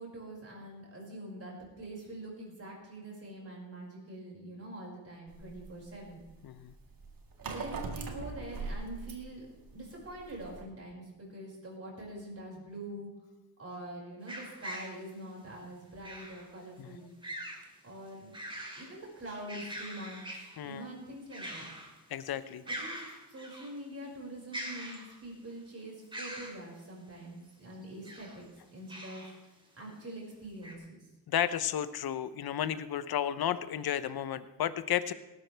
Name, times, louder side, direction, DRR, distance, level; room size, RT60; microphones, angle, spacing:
voice 1, 0.0-6.2 7.4-9.5 9.7-13.1 13.6-17.1 17.8-18.3 18.8-21.7 22.6-23.0 23.3-29.3 29.7-31.1, right 1 dB, 35° right, -3 dB, 5.6 m, -45 dB
sound 1, 5.3-10.6, right 4 dB, 60° right, 2.0 m, -41 dB
voice 2, 6.4-6.7 16.8-16.9 20.6-20.9 22.1-22.6 31.3-35.1, left 10 dB, 65° left, 14 dB, 0.8 m, -33 dB
sound 2, 14.3-15.0 16.0-16.4 17.2-17.6 18.1-18.9 19.3-20.6 21.3-22.0 22.3-22.4 22.7-23.7 24.5-25.4 26.1-26.6 27.8-28.4 28.9-29.3 29.9-30.0 30.6-30.7, right 1 dB, 10° right, 2.7 m, -42 dB
18.5 x 12.5 x 3.4 m, 1.0 s
wide cardioid pair, 120°, 39 cm